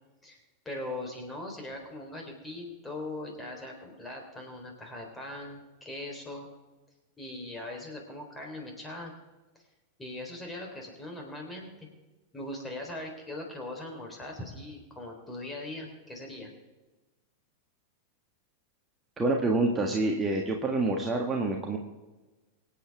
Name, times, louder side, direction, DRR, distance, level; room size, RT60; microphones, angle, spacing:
voice 1, 0.7-6.5 7.2-9.1 10.0-11.9 12.3-16.5, left 1 dB, 10° left, 1 dB, 3.8 m, -40 dB
voice 2, 19.2-21.8, right 2 dB, 15° right, 1 dB, 1.6 m, -27 dB
24.5 x 8.7 x 3.6 m, 1.2 s
figure-of-eight pair, 90°, 0 cm